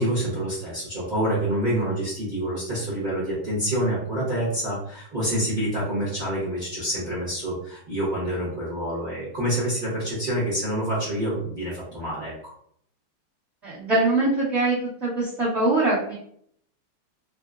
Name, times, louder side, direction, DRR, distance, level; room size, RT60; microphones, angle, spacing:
voice 1, 0.0-12.5, right 1 dB, 55° right, -10 dB, 0.5 m, -27 dB
voice 2, 13.6-16.1, right 2 dB, 40° right, -11 dB, 1.1 m, -23 dB
3.8 x 2.0 x 2.4 m, 0.65 s
omnidirectional pair, 2.4 m